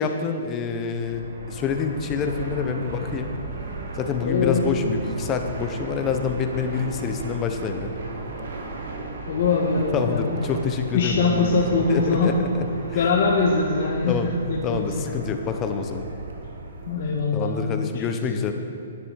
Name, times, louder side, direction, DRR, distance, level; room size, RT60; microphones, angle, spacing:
voice 1, 0.0-3.3 3.9-7.9 9.9-11.6 11.9-13.1 14.0-14.3 14.6-16.0 17.3-18.5, left 6 dB, 20° left, 6 dB, 0.7 m, -27 dB
Fixed-wing aircraft airplane, 0.8-17.2, right 2 dB, 75° right, 1.4 m, -35 dB
voice 2, 4.2-4.6 9.3-10.4 10.9-12.3 12.9-14.1 14.4-15.0 16.9-17.9, left 4 dB, 50° left, -3 dB, 1.3 m, -22 dB
11.0 x 9.2 x 4.6 m, 2.6 s
hypercardioid pair, 155°, 0 cm